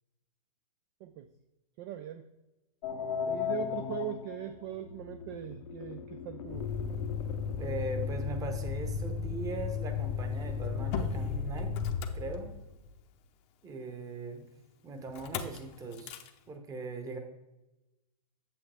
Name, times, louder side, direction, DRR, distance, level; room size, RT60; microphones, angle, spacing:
voice 1, 1.8-2.3 3.3-6.7, right 12 dB, 35° right, 10 dB, 0.4 m, -40 dB
sound 1, 2.8-8.3, left 8 dB, 60° left, 0.8 m, -38 dB
Motor vehicle (road), 6.5-12.9 15.1-15.6 15.9-16.3, left 6 dB, 35° left, 0.8 m, -34 dB
voice 2, 7.6-11.8 12.1-12.5 13.6-14.5 14.8-16.2 16.5-17.2, right 3 dB, 15° right, 6 dB, 1.1 m, -40 dB
8.5 x 7.0 x 3.4 m, 0.98 s
hypercardioid pair, 125°, 20 cm